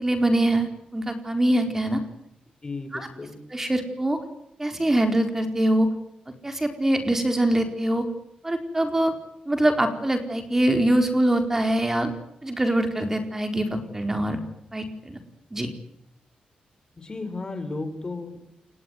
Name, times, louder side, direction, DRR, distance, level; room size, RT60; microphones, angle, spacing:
voice 1, 0.0-2.0 2.9-3.1 3.5-4.2 4.6-5.9 6.4-8.1 8.4-9.1 9.5-12.1 12.4-14.4 14.7-15.2 15.5-15.7, right 1 dB, 15° right, 7 dB, 4.4 m, -23 dB
voice 2, 2.6-3.4 17.0-18.4, left 3 dB, 30° left, 9 dB, 5.6 m, -34 dB
29.0 x 20.5 x 9.9 m, 0.81 s
cardioid pair, 105°, 3 cm